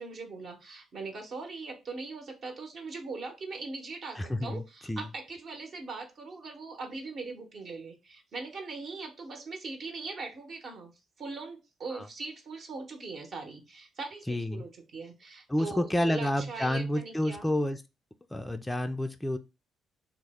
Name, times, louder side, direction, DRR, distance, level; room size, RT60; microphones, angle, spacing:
voice 1, 0.0-17.5, right 3 dB, 55° right, 3 dB, 0.8 m, -41 dB
voice 2, 4.1-5.1 11.9-12.1 14.3-14.7 15.5-17.8 18.3-19.4, left 1 dB, 10° left, 6 dB, 0.3 m, -30 dB
3.1 x 2.0 x 3.4 m, 0.26 s
cardioid pair, 95°, 0 cm